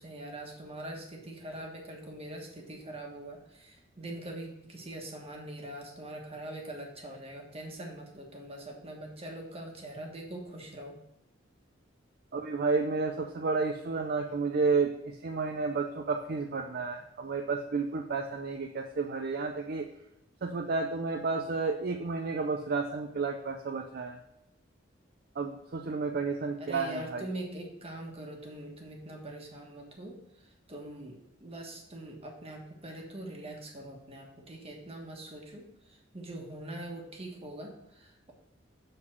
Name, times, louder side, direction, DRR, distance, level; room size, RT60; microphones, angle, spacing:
voice 1, 0.0-11.0 26.6-38.3, right 1 dB, 30° right, 0 dB, 1.4 m, -43 dB
voice 2, 12.3-19.9 20.4-24.2 25.4-27.2, right 4 dB, 50° right, 4 dB, 0.5 m, -31 dB
7.7 x 3.9 x 6.0 m, 0.83 s
head